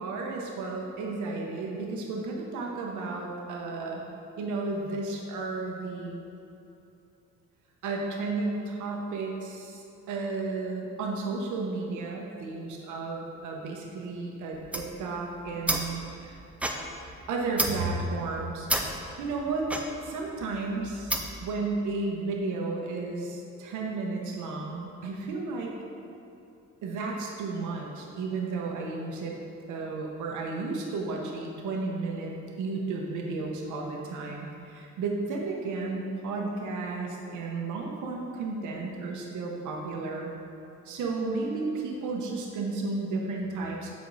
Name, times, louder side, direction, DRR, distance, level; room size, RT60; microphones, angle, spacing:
voice 1, 0.0-4.0 4.4-6.2 7.8-16.4 17.3-19.7 20.0-21.2 21.4-25.7 26.8-29.3 29.7-32.3 32.6-40.3 40.8-43.9, right 3 dB, 75° right, -1 dB, 0.9 m, -33 dB
sound 1, 14.5-21.5, right 1 dB, 5° right, 0.5 m, -33 dB
7.2 x 4.8 x 4.0 m, 2.7 s
cardioid pair, 90°, 30 cm